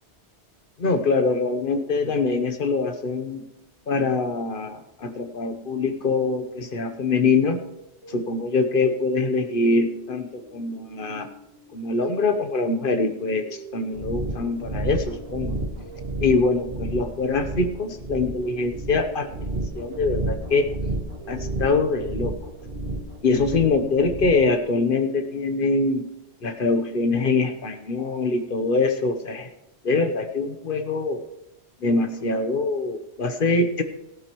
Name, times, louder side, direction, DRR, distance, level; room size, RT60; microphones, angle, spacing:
voice 1, 0.8-3.4 3.9-7.6 8.1-11.3 11.7-15.6 16.2-19.3 19.7-20.7 21.3-22.3 23.2-26.1 26.4-29.5 29.8-31.2 31.8-33.8, left 3 dB, 50° left, 7 dB, 1.0 m, -24 dB
sound 1, 8.0-24.4, right 3 dB, 20° left, 5.0 m, -47 dB
sound 2, 13.9-24.5, right 2 dB, 60° right, 2.1 m, -31 dB
17.5 x 12.0 x 3.0 m, 0.91 s
omnidirectional pair, 1.2 m